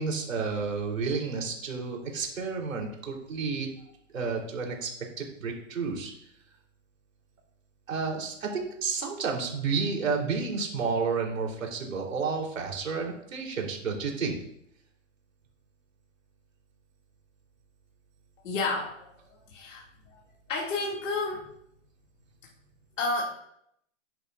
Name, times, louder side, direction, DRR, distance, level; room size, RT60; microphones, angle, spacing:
voice 1, 0.0-3.7 4.1-4.9 5.2-6.1 7.9-14.4, right 5 dB, 85° right, 0 dB, 3.4 m, -31 dB
voice 2, 18.4-19.8 20.1-20.2 20.5-21.5 23.0-23.2, left 3 dB, 70° left, -3 dB, 2.4 m, -31 dB
10.0 x 9.2 x 2.5 m, 0.74 s
hypercardioid pair, 150°, 39 cm